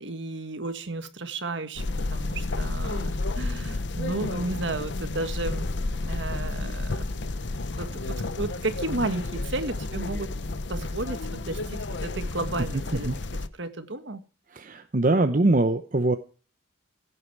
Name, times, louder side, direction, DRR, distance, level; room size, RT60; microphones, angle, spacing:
voice 1, 0.0-5.7 6.0-7.1 7.8-10.3 10.7-13.1 13.6-14.2, right 2 dB, 65° right, 10 dB, 1.6 m, -33 dB
sound 1, 1.8-13.5, left 2 dB, 60° left, 0.8 m, -31 dB
voice 2, 14.5-16.2, right 2 dB, 40° right, 8 dB, 0.8 m, -22 dB
16.5 x 8.7 x 4.6 m, 0.36 s
head